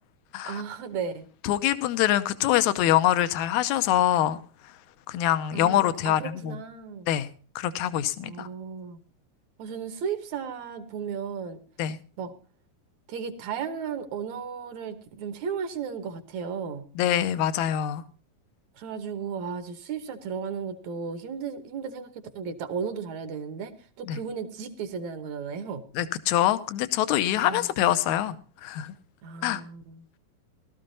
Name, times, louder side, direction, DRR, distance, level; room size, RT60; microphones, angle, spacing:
voice 1, 0.4-1.3 5.5-7.1 8.2-9.0 9.6-11.6 12.2-12.3 13.1-16.8 18.8-25.8 27.4-27.7 29.2-30.0, right 6 dB, 65° right, 9 dB, 2.2 m, -35 dB
voice 2, 1.4-4.4 5.1-6.6 7.1-7.3 7.6-8.5 11.8-12.0 17.0-18.0 24.1-24.2 26.0-28.4 28.6-28.9 29.4-29.6, left 12 dB, 75° left, 12 dB, 2.0 m, -24 dB
18.0 x 13.0 x 2.7 m, 0.40 s
omnidirectional pair, 3.8 m